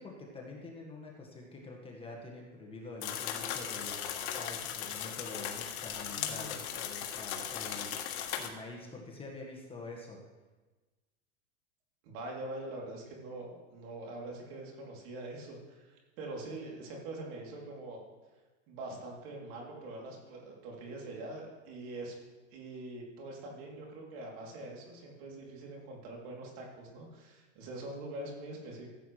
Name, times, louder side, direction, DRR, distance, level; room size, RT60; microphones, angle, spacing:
voice 1, 0.0-10.2, left 2 dB, 15° left, -1 dB, 1.6 m, -46 dB
sound 1, 3.0-8.5, left 9 dB, 65° left, 1.5 m, -37 dB
voice 2, 6.1-7.1 12.0-18.0 18.7-22.1 22.5-28.9, right 2 dB, 55° right, -2 dB, 3.3 m, -44 dB
15.5 x 8.1 x 3.3 m, 1.2 s
supercardioid pair, 135°, 37 cm